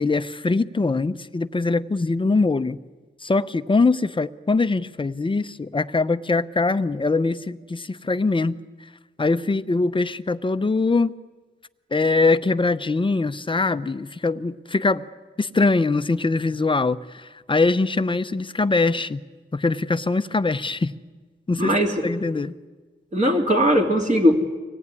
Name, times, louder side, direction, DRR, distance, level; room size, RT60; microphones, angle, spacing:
voice 1, 0.0-2.8 3.2-8.6 9.2-11.1 11.9-15.0 15.4-19.2 19.5-20.9 21.5-21.7 22.0-22.6, left 3 dB, 25° left, 13 dB, 0.7 m, -22 dB
voice 2, 21.5-22.0 23.1-24.4, equal, 35° right, 2 dB, 2.6 m, -19 dB
25.0 x 18.0 x 9.7 m, 1.4 s
wide cardioid pair, 135°, 21 cm